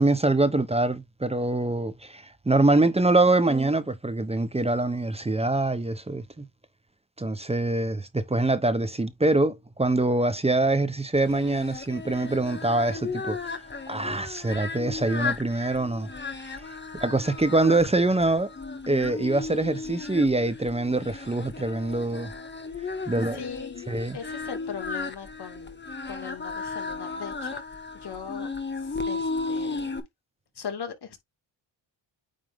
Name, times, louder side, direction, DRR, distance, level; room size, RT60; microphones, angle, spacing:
voice 1, 0.0-6.4 7.2-13.6 13.9-16.1 16.5-16.6 16.9-18.5 18.9-22.3 23.1-23.4 23.9-24.2, right 2 dB, 15° right, 0.9 m, -24 dB
Singing, 11.2-30.0, left 4 dB, 25° left, 1.5 m, -35 dB
voice 2, 22.9-25.8 26.1-27.6 27.9-28.5 28.8-29.9 30.6-31.2, left 7 dB, 55° left, 2.3 m, -39 dB
9.2 x 3.4 x 3.5 m
cardioid pair, 100°, 47 cm